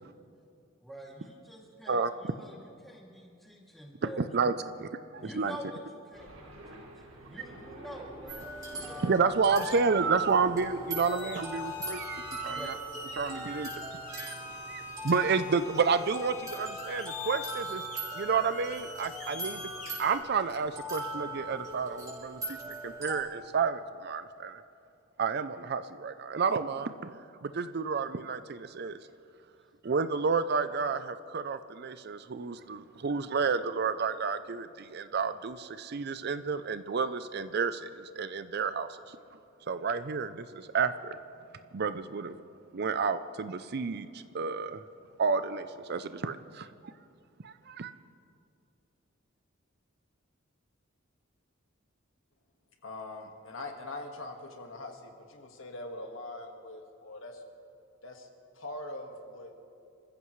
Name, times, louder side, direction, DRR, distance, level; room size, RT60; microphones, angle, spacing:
voice 1, 0.8-4.3 5.2-8.4 8.7-9.1 12.5-12.8, equal, ahead, -3 dB, 2.5 m, -47 dB
voice 2, 4.2-5.6 8.7-12.7 13.2-14.4 14.7-17.8 18.1-19.6 20.0-22.6 22.8-24.6 25.2-27.1 27.4-29.0 29.8-39.2 39.7-41.2 41.7-42.4 42.7-44.8 45.2-46.7 47.4-47.9, right 5 dB, 50° right, 12 dB, 0.5 m, -30 dB
sound 1, 6.1-23.7, right 1 dB, 85° right, 1.8 m, -52 dB
sound 2, 8.3-23.2, equal, 15° right, 5.1 m, -41 dB
sound 3, 11.0-20.2, left 3 dB, 35° left, 2.3 m, -44 dB
voice 3, 52.8-57.4 58.0-58.3 58.5-59.5, left 2 dB, 70° left, 3 dB, 1.7 m, -42 dB
27.5 x 15.0 x 3.2 m, 2.5 s
head